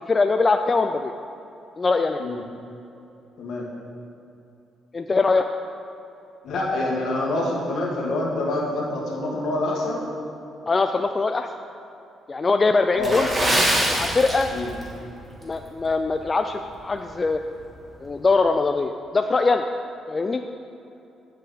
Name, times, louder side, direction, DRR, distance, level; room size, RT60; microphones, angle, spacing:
voice 1, 0.1-1.1 1.8-2.2 4.9-5.5 10.7-11.5 12.3-13.3 13.9-14.5 15.4-17.4 18.0-19.7 20.1-20.4, left 3 dB, 30° left, 6 dB, 0.3 m, -22 dB
voice 2, 6.4-10.0 12.9-13.6 14.5-14.7, left 2 dB, 70° left, -3 dB, 1.8 m, -26 dB
Water / Splash splatter, 13.0-14.9 15.2-15.4 16.0-16.2 16.7-16.8, right 1 dB, 20° right, 1.7 m, -24 dB
9.5 x 6.6 x 4.0 m, 2.9 s
cardioid pair, 90°, 0 cm